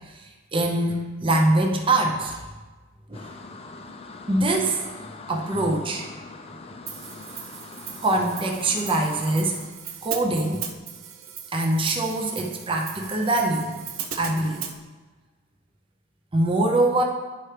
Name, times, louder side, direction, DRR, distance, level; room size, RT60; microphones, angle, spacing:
voice 1, 0.0-2.4 3.1-3.4 4.3-4.8 5.3-6.1 8.0-9.6 10.0-10.6 11.5-13.7 14.1-14.6 16.3-17.0, right 2 dB, 25° right, 1 dB, 0.6 m, -23 dB
sound 1, 3.1-9.7, left 3 dB, 30° left, 0.5 m, -42 dB
Hi-hat, 6.9-14.8, right 8 dB, 85° right, 0.6 m, -38 dB
10.5 x 4.4 x 3.3 m, 1.3 s
head